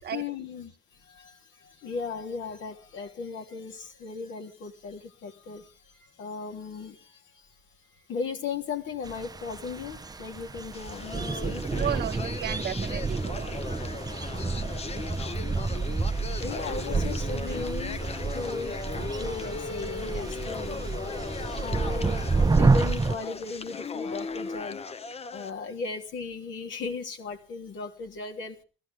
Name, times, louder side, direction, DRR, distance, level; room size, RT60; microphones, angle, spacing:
voice 1, 0.1-7.5 8.1-12.0 16.4-25.0 25.3-28.6, left 4 dB, 75° left, 3.3 m, -37 dB
sound 1, 9.0-23.2, right 3 dB, 20° right, 0.8 m, -29 dB
sound 2, 10.7-25.5, left 4 dB, 30° left, 0.8 m, -37 dB
voice 2, 11.7-13.6, right 10 dB, 55° right, 1.1 m, -34 dB
21.0 x 15.0 x 3.7 m
cardioid pair, 90°, 20 cm